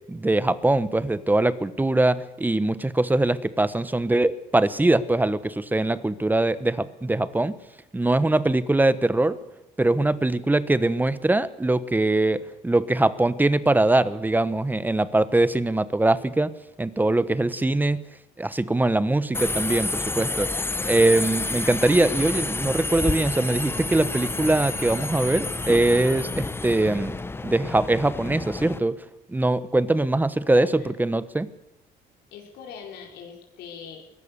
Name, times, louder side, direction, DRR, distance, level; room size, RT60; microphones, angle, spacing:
voice 1, 0.1-7.5 7.9-9.4 9.8-16.5 16.8-18.0 18.4-20.5 20.9-27.2 27.4-29.0 29.3-31.5, right 2 dB, 10° right, 15 dB, 1.1 m, -22 dB
Subway metro underground, 19.3-28.8, left 2 dB, 15° left, 0.9 m, -29 dB
voice 2, 29.6-30.2 30.4-30.9 32.3-34.0, left 7 dB, 80° left, 0 dB, 4.8 m, -42 dB
22.5 x 18.5 x 6.9 m, 0.91 s
cardioid pair, 110°, 17 cm